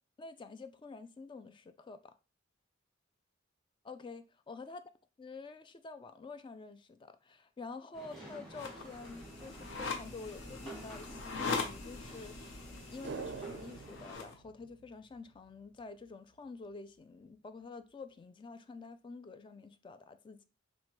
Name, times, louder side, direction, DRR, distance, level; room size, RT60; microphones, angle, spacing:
voice 1, 0.2-2.1 3.8-4.8 5.2-20.5, left 4 dB, 25° left, 0.3 m, -48 dB
sound 1, 7.9-14.1, right 1 dB, ahead, 1.2 m, -52 dB
sound 2, 8.5-14.3, left 4 dB, 70° left, 0.8 m, -41 dB
sound 3, 13.0-15.5 15.8-15.9, right 5 dB, 60° right, 0.4 m, -46 dB
6.0 x 2.2 x 3.0 m
head